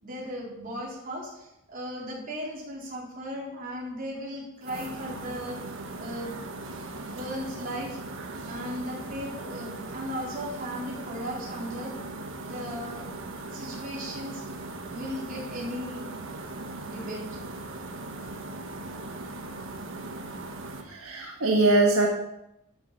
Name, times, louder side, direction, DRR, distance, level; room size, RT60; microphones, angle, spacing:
voice 1, 0.0-5.6 6.0-6.4 7.0-8.0 8.5-12.0 12.4-13.1 13.5-14.4 14.9-16.1 16.8-17.2, equal, 40° right, -3 dB, 3.8 m, -36 dB
sound 1, 4.6-20.8, right 2 dB, 65° right, 1.4 m, -39 dB
voice 2, 20.8-22.1, right 2 dB, 85° right, 0 dB, 1.6 m, -22 dB
12.5 x 7.2 x 5.9 m, 0.86 s
head